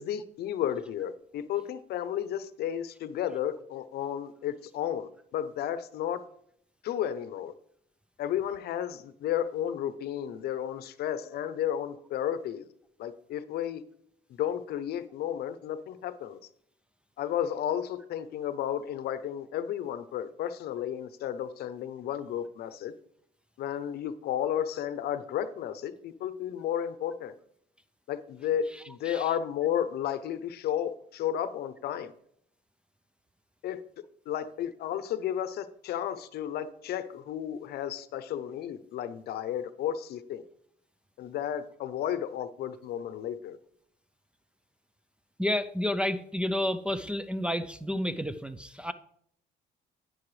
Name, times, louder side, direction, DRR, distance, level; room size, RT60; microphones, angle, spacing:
voice 1, 0.0-6.2 6.8-7.5 8.2-12.6 13.0-13.8 14.4-16.4 17.2-22.9 23.6-27.3 28.1-32.1 33.6-33.8 34.3-40.4 41.2-43.6, left 10 dB, 70° left, 0.8 m, -33 dB
voice 2, 45.4-48.9, left 1 dB, 5° right, 0.5 m, -30 dB
11.0 x 9.4 x 3.3 m
cardioid pair, 110°, 17 cm